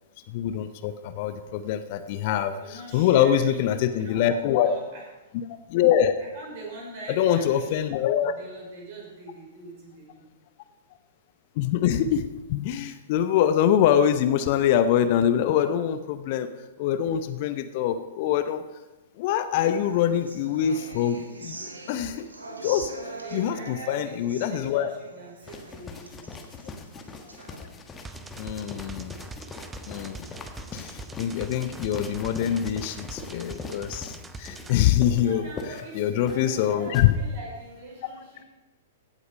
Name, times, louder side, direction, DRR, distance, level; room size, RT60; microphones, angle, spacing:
voice 1, 0.3-2.5 2.9-4.8 5.7-6.1 7.1-8.3 11.6-16.5 16.8-18.6 19.2-22.3 22.6-22.9 23.3-24.9 28.4-29.2 29.9-30.2 30.7-35.4 35.9-37.1, left 10 dB, 45° left, 11 dB, 0.7 m, -24 dB
voice 2, 2.1-5.1 6.2-10.2 23.2-26.4 35.2-38.4, right 3 dB, 45° right, -2 dB, 5.3 m, -43 dB
Human voice / Acoustic guitar, 19.6-27.6, right 2 dB, 75° right, 1.8 m, -43 dB
sound 1, 25.4-37.1, left 4 dB, 15° left, 1.3 m, -41 dB
sound 2, 28.0-34.7, right 3 dB, 10° right, 0.7 m, -42 dB
16.0 x 8.2 x 5.3 m, 1.1 s
figure-of-eight pair, 105°, 0 cm